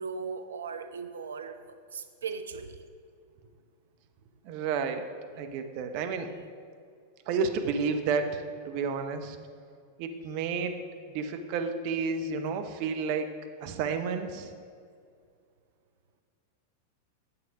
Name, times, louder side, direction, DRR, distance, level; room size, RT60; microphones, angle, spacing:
voice 1, 0.0-1.6 1.9-2.8, right 5 dB, 75° right, 9 dB, 0.4 m, -37 dB
voice 2, 4.4-5.1 5.4-6.3 7.3-9.4 10.0-10.8 11.1-13.3 13.6-14.5, right 5 dB, 50° right, 7 dB, 0.8 m, -31 dB
8.7 x 7.6 x 4.8 m, 2.2 s
figure-of-eight pair, 95°, 0 cm